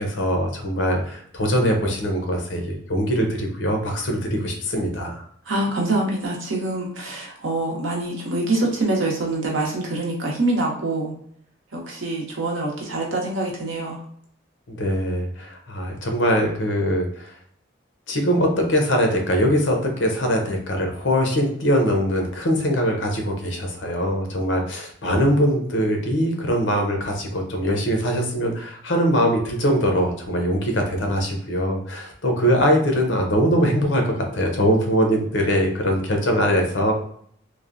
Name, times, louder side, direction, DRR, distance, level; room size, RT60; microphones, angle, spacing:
voice 1, 0.0-5.2 14.7-17.4 18.1-36.9, equal, 65° left, 3 dB, 0.6 m, -22 dB
voice 2, 5.5-11.1 11.7-14.0, right 2 dB, 80° right, -1 dB, 0.8 m, -25 dB
3.1 x 2.1 x 2.5 m, 0.63 s
head